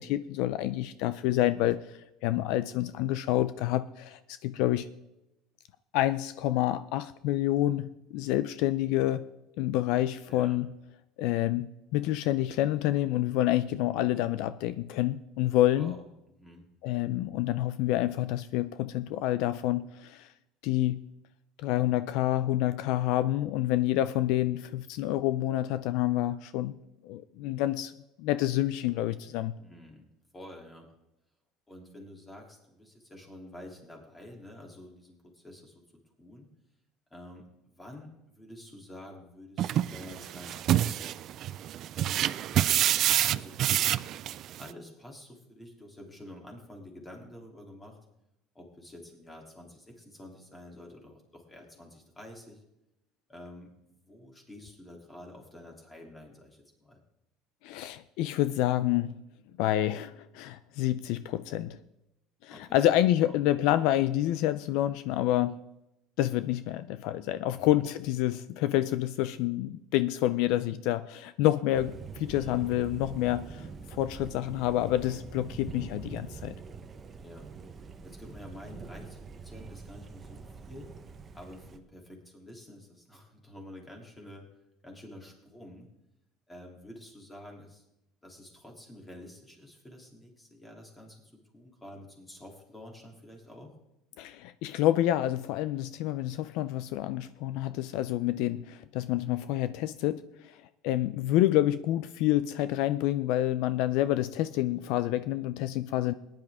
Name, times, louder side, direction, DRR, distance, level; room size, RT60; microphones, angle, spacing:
voice 1, 0.0-4.9 5.9-9.2 9.6-10.7 11.2-16.0 16.8-20.3 20.6-21.1 21.6-26.8 27.0-27.9 28.2-29.6 57.6-59.2 59.6-61.8 62.4-65.6 66.2-76.5 94.2-100.6 100.8-106.1, left 14 dB, 70° left, 14 dB, 0.5 m, -28 dB
voice 2, 10.3-10.6 15.7-16.7 29.6-30.1 30.3-30.9 31.7-36.5 37.1-41.2 41.9-42.8 43.2-44.1 44.6-48.0 48.5-52.6 53.3-57.0 62.5-62.9 63.2-63.4 67.5-67.8 77.2-77.5 78.0-80.9 81.3-84.4 84.8-85.9 86.5-87.8 88.2-93.7, left 1 dB, 10° left, 1 dB, 2.9 m, -49 dB
sound 1, 39.6-44.7, right 12 dB, 45° right, 0.3 m, -27 dB
Thunder, 71.7-81.8, right 4 dB, 25° right, 0.9 m, -44 dB
19.5 x 10.5 x 3.6 m, 0.89 s
cardioid pair, 150°, 0 cm